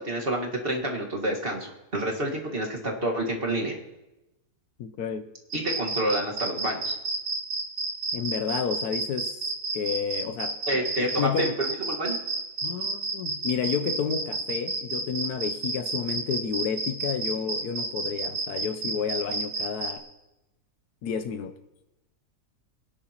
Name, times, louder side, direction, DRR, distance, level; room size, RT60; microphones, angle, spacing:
voice 1, 0.0-3.8 5.5-6.9 10.7-12.2, right 1 dB, 35° right, 1.8 m, -28 dB
voice 2, 4.8-5.3 8.1-10.6 11.0-11.5 12.6-20.1 21.0-21.5, left 7 dB, 75° left, 1.2 m, -31 dB
sound 1, 5.5-19.9, right 3 dB, 60° right, 2.0 m, -30 dB
23.5 x 10.5 x 3.0 m
omnidirectional pair, 1.7 m